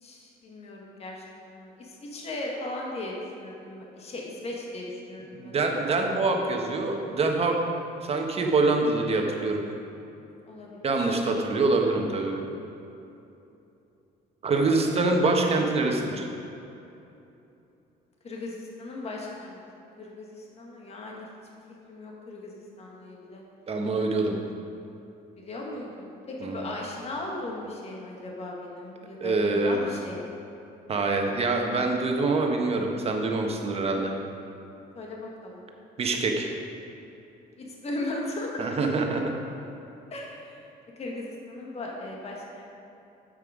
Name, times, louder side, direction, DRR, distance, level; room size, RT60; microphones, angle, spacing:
voice 1, 0.0-5.8 10.5-11.1 14.7-14.8 18.2-19.6 20.0-21.3 21.9-23.4 25.4-30.4 35.0-35.6 37.6-38.7 40.1-40.6 41.0-42.7, left 2 dB, 35° left, -2 dB, 1.7 m, -37 dB
voice 2, 5.3-7.6 8.0-9.6 10.8-12.4 14.4-16.3 23.7-24.4 26.4-26.7 29.2-29.9 30.9-34.1 36.0-36.5 38.6-39.3, right 3 dB, 35° right, 2 dB, 1.3 m, -25 dB
9.0 x 7.8 x 5.0 m, 2.8 s
cardioid pair, 110°, 17 cm